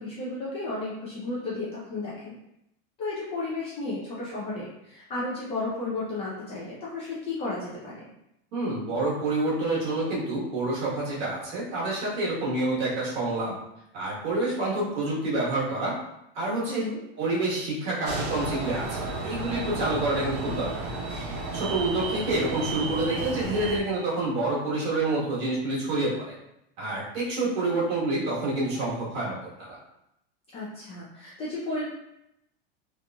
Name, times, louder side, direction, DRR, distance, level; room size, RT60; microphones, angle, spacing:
voice 1, 0.0-2.4 3.0-8.1 16.7-17.0 30.5-31.8, left 2 dB, 20° left, -6 dB, 0.3 m, -33 dB
voice 2, 8.5-13.5 13.9-15.9 16.3-16.8 17.2-20.9 21.5-26.3 26.8-29.8, right 2 dB, 50° right, -6 dB, 1.3 m, -28 dB
sound 1, 18.0-23.8, right 3 dB, 85° right, 0.7 m, -33 dB
2.9 x 2.5 x 2.2 m, 0.84 s
supercardioid pair, 160°, 30 cm